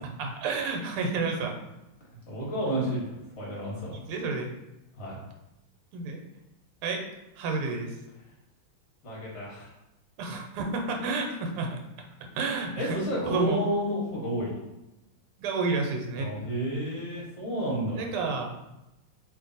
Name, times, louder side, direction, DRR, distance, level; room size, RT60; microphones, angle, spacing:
voice 1, 0.0-1.6 3.9-4.5 5.9-6.2 6.8-7.0 7.4-8.0 10.2-11.8 12.3-13.0 13.3-13.6 15.4-16.3 17.9-18.5, right 3 dB, 85° right, 2 dB, 1.6 m, -30 dB
voice 2, 2.3-3.9 5.0-5.2 9.0-9.7 12.8-14.5 16.2-18.0, right 1 dB, 45° left, -5 dB, 0.9 m, -31 dB
3.2 x 2.5 x 3.9 m, 0.94 s
omnidirectional pair, 2.4 m